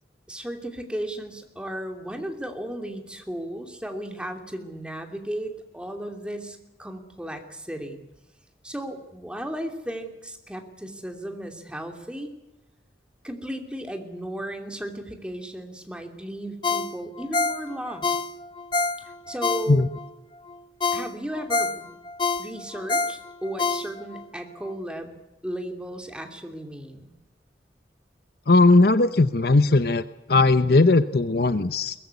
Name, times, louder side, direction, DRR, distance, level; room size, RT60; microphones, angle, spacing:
voice 1, 0.3-8.0 8.6-12.3 13.2-18.2 19.0-19.9 20.9-21.9 22.4-25.2 25.4-27.1, right 1 dB, 5° right, 4 dB, 2.9 m, -35 dB
Ringtone, 16.6-20.1 20.5-20.6 20.8-24.2 24.6-24.7, left 4 dB, 25° left, 1.0 m, -27 dB
voice 2, 28.5-30.0 30.3-31.9, left 3 dB, 60° left, 12 dB, 0.8 m, -18 dB
23.0 x 19.5 x 8.3 m, 0.97 s
head